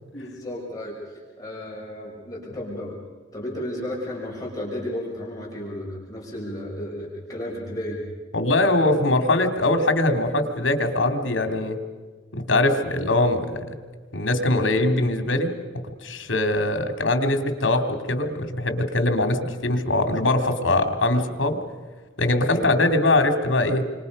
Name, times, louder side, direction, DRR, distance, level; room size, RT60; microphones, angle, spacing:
voice 1, 0.1-3.0 3.3-8.0 22.5-22.7, left 1 dB, 20° left, -4 dB, 5.7 m, -33 dB
voice 2, 8.3-11.8 12.3-13.6 14.1-17.8 18.1-21.6 22.2-23.9, left 2 dB, 75° left, 6 dB, 3.0 m, -22 dB
30.0 x 25.5 x 5.4 m, 1.4 s
head